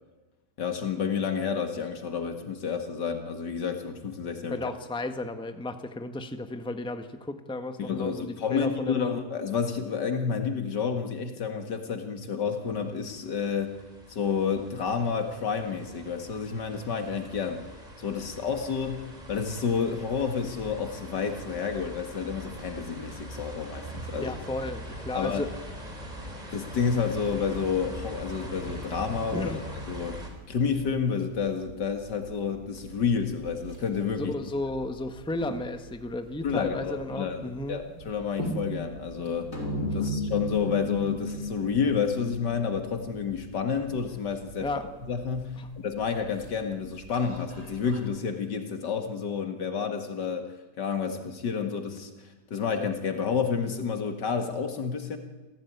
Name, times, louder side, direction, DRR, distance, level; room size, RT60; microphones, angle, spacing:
voice 1, 0.6-4.6 7.8-13.8 14.1-17.7 18.0-24.3 25.1-25.5 26.5-30.2 30.5-34.3 36.4-37.4 37.7-39.5 39.9-44.7 45.1-50.5 50.8-55.2, left 6 dB, 90° left, 6 dB, 2.5 m, -30 dB
voice 2, 4.5-9.1 24.1-25.5 29.3-29.6 34.2-37.8 39.9-40.1 44.6-44.8 45.6-45.7, left 2 dB, 5° left, 8 dB, 1.3 m, -34 dB
sound 1, 12.5-30.3, equal, 25° right, 4.4 m, -42 dB
sound 2, 28.3-48.0, right 2 dB, 70° right, 5.0 m, -44 dB
sound 3, 39.5-44.1, left 2 dB, 50° left, 5.2 m, -33 dB
28.0 x 16.0 x 9.5 m, 1.2 s
omnidirectional pair, 1.8 m